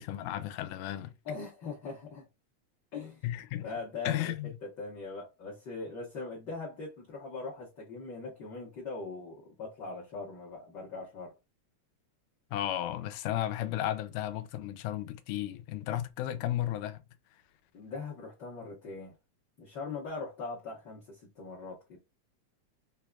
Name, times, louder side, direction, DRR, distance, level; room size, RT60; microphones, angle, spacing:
voice 1, 0.0-1.1 3.2-3.7 4.1-4.6 12.5-17.0, left 12 dB, 85° left, 1.9 m, -34 dB
voice 2, 1.2-2.2 2.9-3.2 3.6-4.3 4.6-11.3 17.7-19.1 19.6-22.0, left 4 dB, 65° left, 1.1 m, -41 dB
4.7 x 2.3 x 2.3 m
omnidirectional pair, 3.3 m